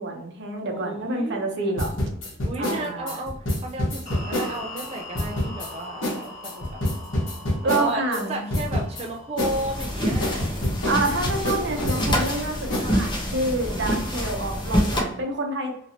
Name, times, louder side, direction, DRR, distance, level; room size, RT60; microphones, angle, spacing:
voice 1, 0.0-1.9 2.6-3.2 7.6-8.4 10.9-15.8, right 2 dB, 65° right, 3 dB, 0.7 m, -28 dB
voice 2, 0.7-1.4 2.4-6.8 7.6-10.6, right 1 dB, 30° right, 0 dB, 0.4 m, -33 dB
sound 1, 1.8-4.9 5.1-5.7 6.0-6.2 6.4-8.2 8.5-9.0 9.4-12.3 12.7-12.9, left 1 dB, 80° left, 1.2 m, -27 dB
sound 2, 4.1-11.2, left 2 dB, 40° left, 1.4 m, -42 dB
sound 3, 9.4-15.0, equal, 25° left, 0.7 m, -27 dB
3.0 x 2.7 x 2.8 m, 0.74 s
head